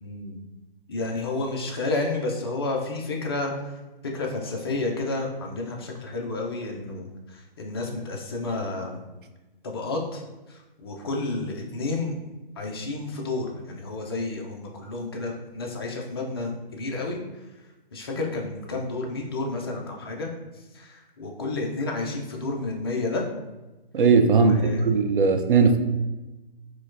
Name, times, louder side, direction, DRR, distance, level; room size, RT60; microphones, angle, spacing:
voice 1, 0.0-0.4 0.9-3.7 4.0-9.0 9.6-10.2 10.5-12.1 12.6-17.2 17.9-20.3 20.7-23.2 24.4-24.9, left 2 dB, 25° left, 0 dB, 0.4 m, -31 dB
voice 2, 23.9-24.6 24.9-25.8, right 5 dB, 65° right, 7 dB, 0.4 m, -18 dB
4.3 x 2.2 x 2.5 m, 1.1 s
figure-of-eight pair, 135°, 29 cm